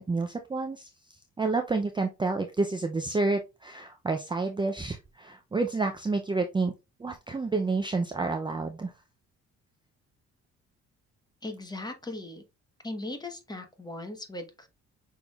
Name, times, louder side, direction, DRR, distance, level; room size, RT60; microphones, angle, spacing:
voice 1, 0.0-6.7 7.0-8.9, right 3 dB, 15° right, 6 dB, 0.5 m, -29 dB
voice 2, 11.4-12.4 12.8-14.7, left 2 dB, 15° left, 6 dB, 1.1 m, -38 dB
5.9 x 3.5 x 2.3 m, 0.26 s
cardioid pair, 90°, 30 cm